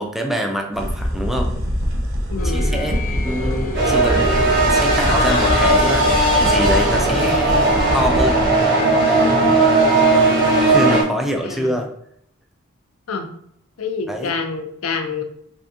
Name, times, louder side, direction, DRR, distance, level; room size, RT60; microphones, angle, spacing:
voice 1, 0.0-1.5 2.4-6.1 6.4-8.5 10.7-11.9 14.1-14.3, equal, ahead, 2 dB, 0.4 m, -25 dB
sound 1, 0.7-8.5, equal, 80° right, 0.8 m, -24 dB
voice 2, 2.3-2.7 11.4-11.8 13.1-13.3 13.8-15.2, left 4 dB, 90° left, 5 dB, 0.5 m, -27 dB
sound 2, 2.4-11.0, left 2 dB, 40° left, 0.6 m, -30 dB
sound 3, 3.7-11.0, right 2 dB, 60° right, 1.4 m, -17 dB
3.5 x 3.3 x 2.7 m, 0.72 s
head